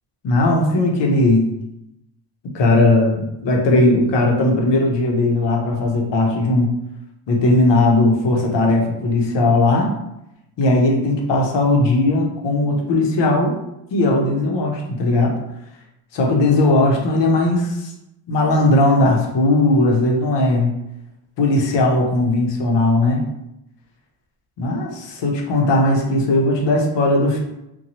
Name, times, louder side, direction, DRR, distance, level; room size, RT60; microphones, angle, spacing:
voice 1, 0.2-1.4 2.5-6.8 7.3-9.9 10.6-13.6 13.9-15.3 16.1-17.9 18.3-20.7 21.4-23.2 24.6-27.4, left 2 dB, 60° left, 0 dB, 0.8 m, -17 dB
2.8 x 2.2 x 2.8 m, 0.87 s
cardioid pair, 115°, 47 cm